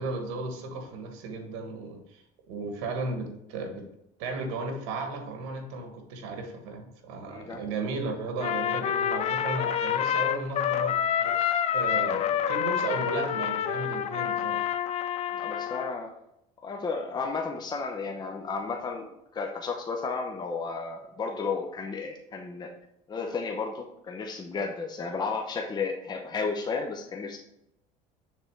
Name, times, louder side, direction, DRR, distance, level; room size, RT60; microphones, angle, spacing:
voice 1, 0.0-3.8 4.2-11.5 11.7-14.7, right 3 dB, 85° right, 4 dB, 1.3 m, -35 dB
voice 2, 7.3-7.6 12.1-12.2 15.3-16.1 16.6-22.7 23.1-27.4, left 4 dB, 25° left, 2 dB, 0.8 m, -33 dB
Trumpet, 8.4-16.0, left 9 dB, 40° left, 0.4 m, -28 dB
6.8 x 3.5 x 4.5 m, 0.79 s
supercardioid pair, 105°, 16 cm